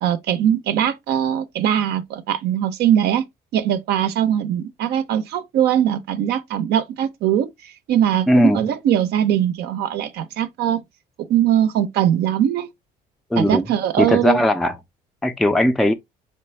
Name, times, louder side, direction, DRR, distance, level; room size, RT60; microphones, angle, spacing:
voice 1, 0.0-3.2 3.5-10.8 11.2-12.7 13.4-14.5, right 10 dB, 75° right, 0.5 m, -21 dB
voice 2, 8.3-8.6 13.3-13.7 14.0-14.8 15.2-15.9, left 1 dB, ahead, 0.3 m, -17 dB
3.4 x 3.1 x 3.0 m
cardioid pair, 110°, 17 cm